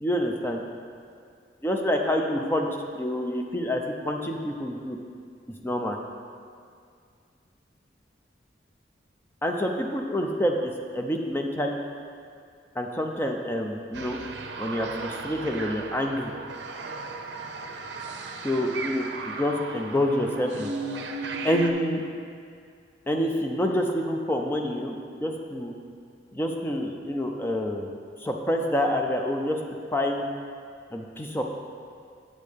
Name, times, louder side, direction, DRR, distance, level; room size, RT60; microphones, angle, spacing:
voice 1, 0.0-0.6 1.6-2.7 3.0-5.0 5.6-6.0 9.4-11.8 12.7-14.2 14.6-16.3 18.4-20.7 21.4-22.0 23.1-24.9 25.2-25.7 26.3-27.9 28.2-29.6 29.9-30.2 30.9-31.4, equal, 10° left, 2 dB, 0.4 m, -27 dB
sound 1, 13.9-21.7, right 3 dB, 70° right, 0.6 m, -36 dB
8.1 x 7.5 x 3.5 m, 2.3 s
head